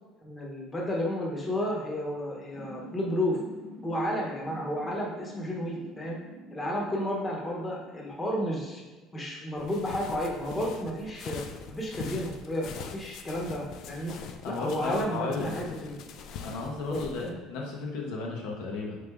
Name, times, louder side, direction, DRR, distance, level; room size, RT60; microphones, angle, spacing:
voice 1, 0.2-3.4 3.8-6.2 6.5-8.8 9.1-11.4 11.7-14.1 14.5-16.0 16.9-17.4, equal, 20° left, -3 dB, 0.9 m, -32 dB
sound 1, 2.5-8.1, left 1 dB, 15° right, 0.9 m, -47 dB
sound 2, 9.6-17.3, left 6 dB, 60° left, 0.3 m, -43 dB
voice 2, 14.4-15.6 16.4-19.0, left 3 dB, 80° left, -1 dB, 0.9 m, -34 dB
3.8 x 3.3 x 3.5 m, 1.2 s
cardioid pair, 130°, 0 cm